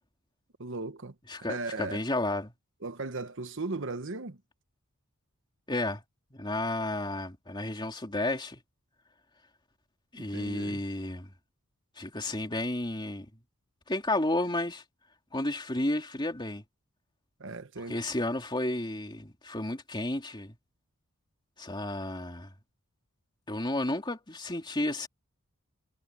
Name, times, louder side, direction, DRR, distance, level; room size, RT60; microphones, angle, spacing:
voice 1, 0.6-1.1 1.5-2.0 2.8-4.4 10.2-10.8 17.4-18.0, right 3 dB, 55° right, 1.2 m, -37 dB
voice 2, 1.3-2.5 5.7-6.0 6.3-8.6 10.1-11.3 12.0-13.3 13.9-14.8 15.3-16.6 17.9-20.5 21.6-22.5 23.5-25.1, left 1 dB, 20° left, 2.9 m, -32 dB
head